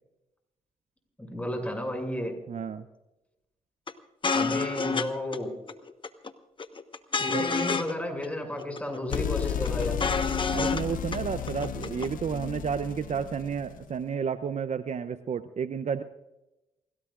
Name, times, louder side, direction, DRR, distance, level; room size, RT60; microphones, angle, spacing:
voice 1, 1.2-2.3 4.3-5.5 7.2-10.0, left 1 dB, 10° left, 2 dB, 6.6 m, -32 dB
voice 2, 2.5-2.9 7.3-7.5 10.5-16.0, right 7 dB, 50° right, 12 dB, 0.7 m, -31 dB
sound 1, 3.9-4.0 4.2-5.1 5.3-5.4 5.7-6.3 6.6-7.9 8.2-8.3 8.6-9.2 9.5-10.8 11.1-11.2 11.5-12.1, left 4 dB, 35° left, 1.2 m, -28 dB
sound 2, 9.1-13.9, left 9 dB, 70° left, 0.7 m, -33 dB
28.5 x 17.5 x 2.5 m, 0.97 s
supercardioid pair, 60°, 15 cm